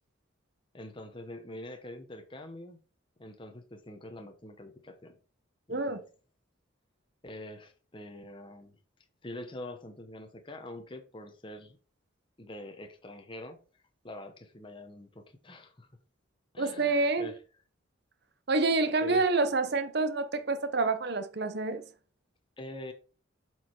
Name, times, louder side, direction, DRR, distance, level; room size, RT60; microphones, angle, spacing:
voice 1, 0.7-2.8 3.2-5.2 5.7-6.0 7.2-8.8 9.2-11.8 12.4-13.6 14.0-15.9 16.5-17.4 19.0-19.3 22.6-22.9, left 1 dB, 25° left, 0.8 m, -44 dB
voice 2, 5.7-6.0 16.6-17.3 18.5-21.8, right 3 dB, 55° right, 0.9 m, -27 dB
7.7 x 4.7 x 4.4 m
head